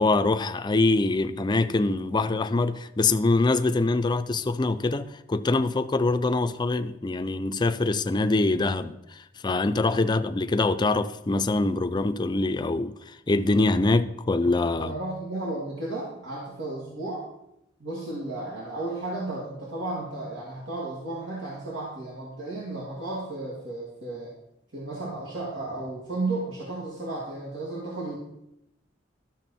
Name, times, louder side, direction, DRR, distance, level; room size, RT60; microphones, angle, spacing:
voice 1, 0.0-13.0 13.3-14.9, left 2 dB, 25° left, 0.4 m, -24 dB
voice 2, 14.8-17.3 17.8-24.3 24.7-28.2, right 2 dB, 90° right, 2.1 m, -33 dB
12.5 x 6.4 x 4.1 m
head